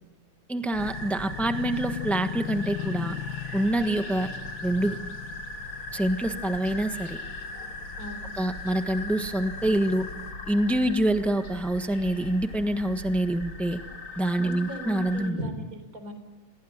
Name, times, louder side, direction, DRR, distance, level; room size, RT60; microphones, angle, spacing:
voice 1, 0.5-3.2 3.5-4.3 4.6-5.0 5.9-7.2 8.4-10.1 10.5-13.8 14.2-15.4, right 1 dB, ahead, 7 dB, 1.0 m, -26 dB
sound 1, 0.7-15.3, left 2 dB, 80° left, 4.4 m, -39 dB
sound 2, 0.8-10.3, left 12 dB, 55° left, 1.6 m, -40 dB
voice 2, 8.0-8.3 14.4-16.1, right 1 dB, 40° right, 8 dB, 4.6 m, -38 dB
28.5 x 18.5 x 9.5 m, 1.1 s
omnidirectional pair, 2.3 m